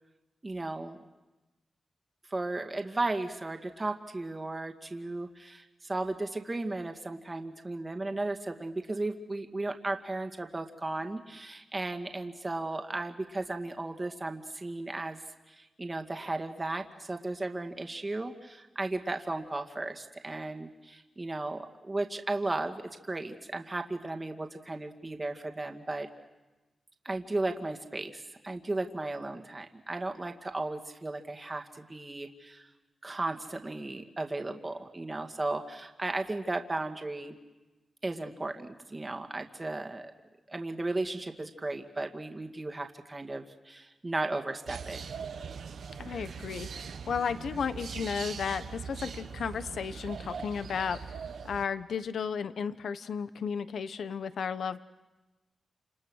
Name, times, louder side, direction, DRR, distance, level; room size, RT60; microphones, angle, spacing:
voice 1, 0.4-1.0 2.3-15.2 15.5-26.1 27.0-32.7 33.0-37.4 38.0-40.1 40.5-45.0, right 2 dB, 30° right, 4 dB, 2.1 m, -35 dB
sound 1, 44.6-51.6, right 6 dB, 85° right, 1.3 m, -41 dB
voice 2, 46.0-51.0 51.4-54.8, left 6 dB, 85° left, 12 dB, 1.0 m, -34 dB
29.0 x 28.0 x 6.4 m, 1.1 s
cardioid pair, 70°, 0 cm